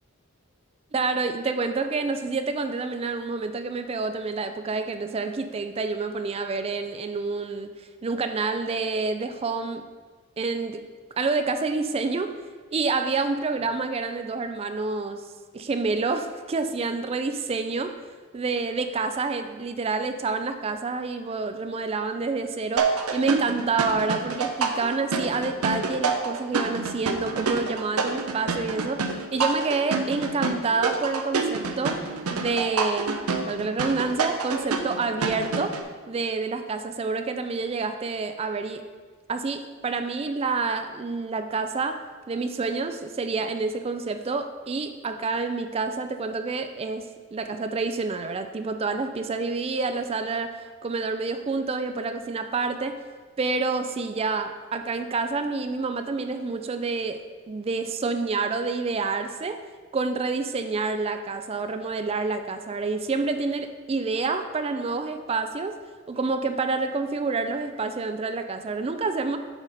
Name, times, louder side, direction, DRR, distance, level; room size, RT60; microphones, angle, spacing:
voice 1, 0.9-7.7 8.0-9.8 10.4-10.8 11.2-12.3 12.7-15.2 15.5-17.9 18.3-32.0 32.3-33.2 33.5-35.7 36.1-38.8 39.3-42.0 42.3-50.5 50.8-53.0 53.4-59.6 59.9-65.7 66.1-69.4, right 4 dB, 25° right, 8 dB, 0.3 m, -28 dB
sound 1, 22.8-35.8, right 4 dB, 85° right, 0.6 m, -28 dB
7.1 x 4.1 x 5.2 m, 1.5 s
head